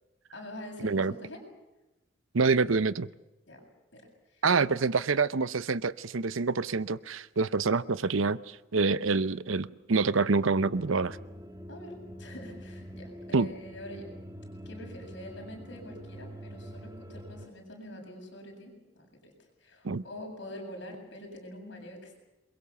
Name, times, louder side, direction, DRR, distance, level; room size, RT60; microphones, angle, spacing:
voice 1, 0.3-1.4 3.5-3.6 3.9-4.0 4.3-4.8 11.7-14.1 14.7-22.1, left 1 dB, 60° left, 2 dB, 7.6 m, -45 dB
voice 2, 0.8-1.1 2.3-3.1 4.4-8.4 8.7-11.2 13.3-13.5 19.8-20.0, right 4 dB, 80° right, 16 dB, 0.8 m, -26 dB
sound 1, 10.6-17.5, equal, 20° right, 1.9 m, -45 dB
28.0 x 22.0 x 7.0 m, 1.0 s
head